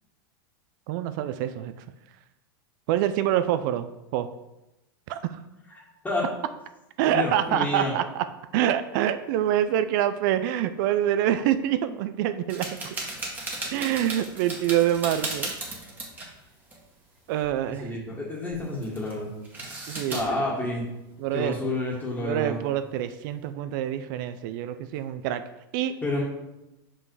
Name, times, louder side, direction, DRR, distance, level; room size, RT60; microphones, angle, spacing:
voice 1, 0.9-1.7 2.9-3.9 4.1-4.3 5.1-5.2 7.0-8.2 8.5-12.7 13.7-15.5 17.3-18.0 19.9-20.4 21.2-21.6 22.2-25.4 25.7-25.9, right 11 dB, 60° right, 11 dB, 0.5 m, -26 dB
voice 2, 7.0-7.9 17.8-19.3 20.1-20.8 21.3-22.6 26.0-26.2, left 2 dB, 15° left, -8 dB, 1.9 m, -29 dB
sound 1, 12.5-16.4 16.6-16.8 17.2-17.5 18.5-19.2 19.4-20.2, right 2 dB, 15° right, 1.7 m, -35 dB
5.4 x 5.4 x 4.8 m, 0.95 s
hypercardioid pair, 110°, 12 cm